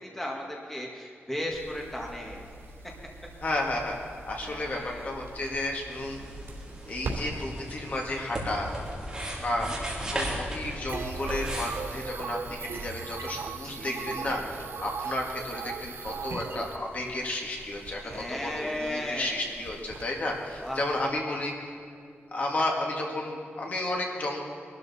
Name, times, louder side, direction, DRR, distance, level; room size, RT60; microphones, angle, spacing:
voice 1, 0.0-2.4 4.4-5.1 9.4-9.8 13.6-14.2 17.9-19.4 20.6-20.8, left 1 dB, 10° left, -2 dB, 1.7 m, -36 dB
sound 1, 1.5-21.1, right 2 dB, 80° right, 3.0 m, -45 dB
voice 2, 3.4-4.0 4.3-6.2 6.9-8.7 9.4-9.7 10.0-21.7 22.3-24.4, left 1 dB, 40° left, 0 dB, 1.8 m, -32 dB
sound 2, 5.9-12.0, right 1 dB, 15° right, 3.0 m, -36 dB
sound 3, 10.9-16.8, right 6 dB, 65° right, 0.6 m, -37 dB
22.5 x 12.5 x 4.2 m, 2.4 s
wide cardioid pair, 180°, 4 cm